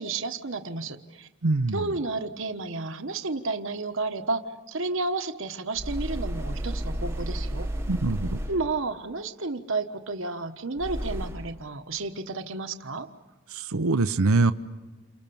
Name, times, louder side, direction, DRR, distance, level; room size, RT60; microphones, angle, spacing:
voice 1, 0.0-1.3 1.7-7.7 8.5-13.1, right 3 dB, 60° right, 7 dB, 1.2 m, -31 dB
voice 2, 1.4-1.8 7.9-8.4 13.5-14.5, right 3 dB, 75° right, 11 dB, 0.8 m, -23 dB
sound 1, 5.8-8.8 10.8-11.6, equal, 10° right, 1.2 m, -32 dB
29.0 x 26.5 x 7.0 m, 1.3 s
head